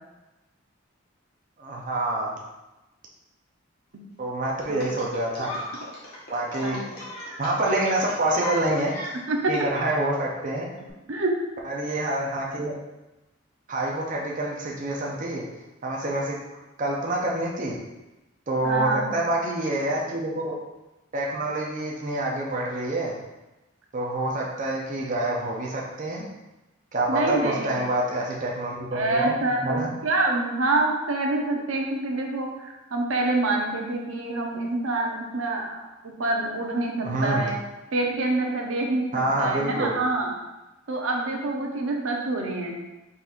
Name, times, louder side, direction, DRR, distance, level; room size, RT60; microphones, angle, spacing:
voice 1, 1.6-2.4 4.2-5.5 6.3-7.1 7.4-8.9 9.5-10.7 11.6-12.7 13.7-15.5 15.8-16.4 16.8-17.8 18.5-20.6 21.1-23.2 23.9-26.3 26.9-29.9 37.0-37.5 39.1-40.0, right 1 dB, 40° right, -3 dB, 0.6 m, -27 dB
sound 1, 4.8-9.6 10.8-10.9, left 2 dB, 50° left, 1.3 m, -36 dB
voice 2, 18.6-19.1 27.1-27.7 28.9-37.6 37.9-40.3 40.9-42.8, right 2 dB, 80° right, 1 dB, 0.7 m, -26 dB
4.2 x 4.0 x 2.5 m, 1.0 s
head